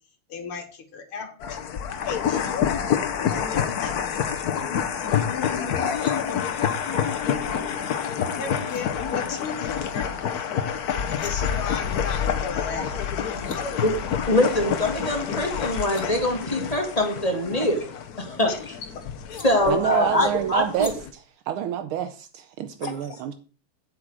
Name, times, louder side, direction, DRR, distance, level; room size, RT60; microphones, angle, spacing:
voice 1, 0.3-2.7 3.2-4.1 4.5-6.6 7.2-7.9 8.4-10.3 11.2-13.8 15.3-15.4 17.6-17.7 18.5-18.6 19.3-20.2 22.9-23.0, left 6 dB, 80° left, 2.2 m, -35 dB
sound 1, 1.4-21.1, left 8 dB, 55° left, 1.2 m, -28 dB
sound 2, 5.7-6.2 8.2-8.3 8.6-8.8 10.9-11.3 13.0-13.1 13.3-13.6 15.5-16.1 17.6-18.6 19.3-19.5 20.7-20.9, left 3 dB, 40° left, 2.4 m, -44 dB
sound 3, 10.0-17.7, right 1 dB, 50° right, 2.9 m, -46 dB
voice 2, 14.3-17.8 18.2-18.5 19.4-20.9, left 1 dB, 20° left, 2.0 m, -23 dB
voice 3, 19.7-23.3, right 10 dB, 80° right, 1.6 m, -28 dB
8.9 x 8.2 x 4.8 m
omnidirectional pair, 2.4 m